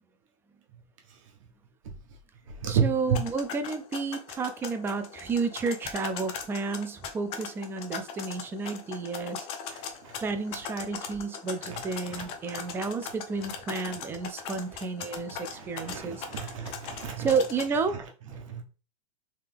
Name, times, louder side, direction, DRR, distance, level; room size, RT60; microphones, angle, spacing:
voice 1, 1.1-1.5 1.8-2.2 2.5-3.2 9.7-10.3 11.0-11.2 11.6-12.9 13.4-13.5 14.4-14.5 15.1-17.3 17.7-18.6, right 7 dB, 70° right, 1.2 m, -34 dB
voice 2, 2.7-9.5 10.2-16.2 17.2-18.0, right 4 dB, 15° right, 0.3 m, -31 dB
sound 1, 3.1-17.7, left 6 dB, 35° left, 0.6 m, -40 dB
3.4 x 3.3 x 3.4 m
supercardioid pair, 150°, 17 cm